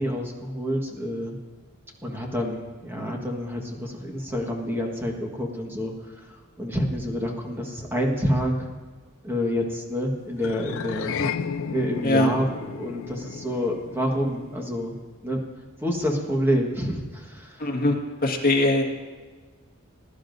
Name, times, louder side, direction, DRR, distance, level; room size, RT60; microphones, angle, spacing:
voice 1, 0.0-1.3 2.0-6.2 6.6-8.7 9.2-11.2 11.7-14.9 15.2-15.4 15.8-17.6, equal, 10° right, 1 dB, 1.5 m, -28 dB
sound 1, 10.4-15.0, left 6 dB, 70° left, 0.5 m, -34 dB
voice 2, 17.6-18.0 18.2-18.8, left 1 dB, 45° left, 0 dB, 1.7 m, -21 dB
20.5 x 11.0 x 2.7 m, 1.4 s
head